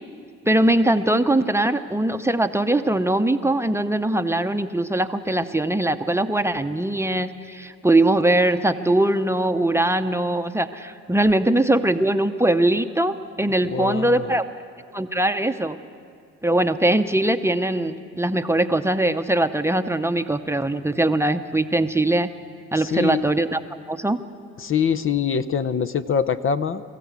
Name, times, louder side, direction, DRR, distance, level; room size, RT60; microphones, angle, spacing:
voice 1, 0.5-14.4 14.9-15.8 16.4-22.3 22.7-23.6 23.9-24.2, right 1 dB, 10° right, 8 dB, 0.7 m, -21 dB
voice 2, 13.7-14.4 22.7-23.2 24.6-26.8, left 7 dB, 45° left, 12 dB, 0.7 m, -24 dB
24.0 x 14.5 x 8.3 m, 2.3 s
cardioid pair, 90°, 30 cm